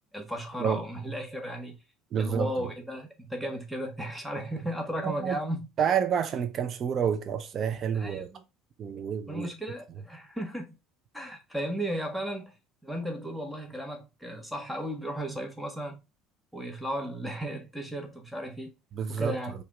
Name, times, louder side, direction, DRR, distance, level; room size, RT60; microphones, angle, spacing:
voice 1, 0.1-1.8 2.2-5.7 7.9-8.4 9.3-10.8 11.1-12.6 12.8-16.0 16.5-18.7 19.1-19.5, equal, ahead, 1.5 m, -35 dB
voice 2, 2.1-2.7 5.0-5.4 5.8-8.3 8.8-9.5 18.9-19.4, right 7 dB, 45° right, 0.8 m, -29 dB
4.9 x 2.8 x 3.5 m
hypercardioid pair, 70°, 0 cm